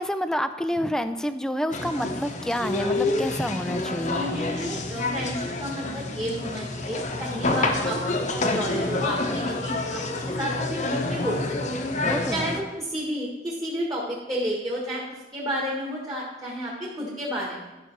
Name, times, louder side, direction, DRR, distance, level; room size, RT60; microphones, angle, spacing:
voice 1, 0.0-4.2 12.0-12.5, equal, 5° left, 10 dB, 0.4 m, -28 dB
sound 1, 1.7-12.6, left 2 dB, 40° left, 0.9 m, -28 dB
voice 2, 4.0-8.0 8.3-11.8 12.3-17.8, equal, 20° right, -4 dB, 1.6 m, -31 dB
12.0 x 6.1 x 4.6 m, 1.1 s
head